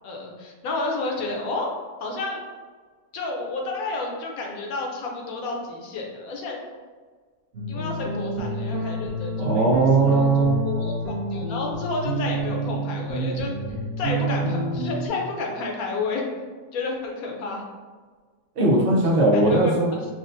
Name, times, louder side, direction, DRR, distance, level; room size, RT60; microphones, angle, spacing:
voice 1, 0.0-1.7 2.0-2.4 3.1-6.6 7.7-9.6 10.0-10.9 11.3-13.5 14.0-16.4 16.7-17.6 19.3-20.1, left 3 dB, 65° left, 0 dB, 1.1 m, -30 dB
sound 1, 7.5-15.1, right 1 dB, 45° right, 1.0 m, -28 dB
voice 2, 9.4-10.6 18.6-19.9, right 2 dB, 90° right, -3 dB, 0.5 m, -19 dB
6.1 x 2.1 x 2.6 m, 1.5 s
omnidirectional pair, 1.7 m